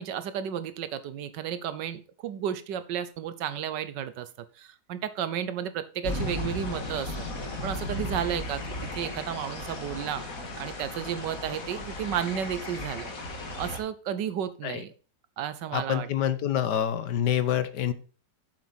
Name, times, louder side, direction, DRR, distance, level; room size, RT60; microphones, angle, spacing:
voice 1, 0.0-4.3 4.6-7.3 7.6-10.2 10.6-13.1 13.6-14.9 15.4-16.1, right 9 dB, 80° right, 13 dB, 1.5 m, -33 dB
sound 1, 6.0-13.8, left 2 dB, 50° left, 2.2 m, -35 dB
voice 2, 15.7-17.9, left 10 dB, 75° left, 13 dB, 1.5 m, -27 dB
7.5 x 7.4 x 4.2 m, 0.37 s
omnidirectional pair, 1.9 m